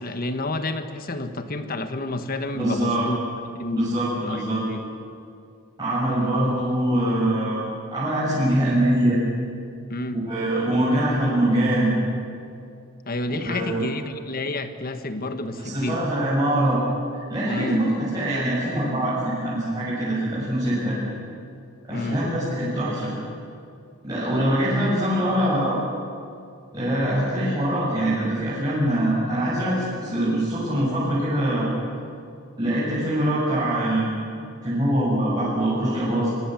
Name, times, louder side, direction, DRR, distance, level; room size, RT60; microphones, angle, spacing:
voice 1, 0.0-3.2 3.4-4.9 9.9-10.3 13.0-16.1 17.5-17.9 21.9-22.2, left 2 dB, 40° left, 8 dB, 1.6 m, -30 dB
voice 2, 2.5-3.1 3.7-4.6 5.8-7.6 7.9-9.2 10.1-11.9 13.5-13.7 15.6-16.8 17.1-21.0 21.9-23.1 24.0-25.8 26.7-31.7 32.6-34.1 34.6-36.3, right 1 dB, 20° right, -9 dB, 7.0 m, -23 dB
26.0 x 24.0 x 7.8 m, 2.4 s
head